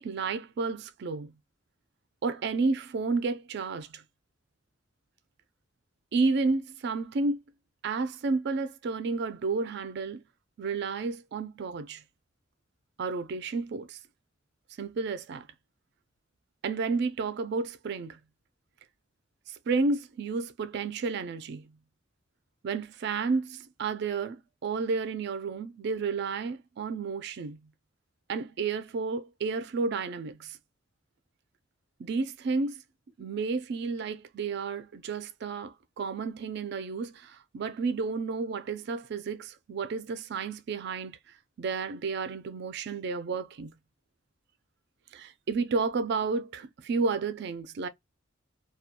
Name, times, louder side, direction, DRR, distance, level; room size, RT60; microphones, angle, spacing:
voice 1, 0.0-1.3 2.2-4.0 6.1-7.4 7.8-10.2 10.6-12.0 13.0-14.0 14.8-15.5 16.6-18.2 19.5-21.7 22.6-27.6 28.3-30.6 32.0-32.8 33.2-43.7 45.1-47.9, right 4 dB, 55° right, 0.4 m, -31 dB
2.3 x 2.1 x 2.7 m
head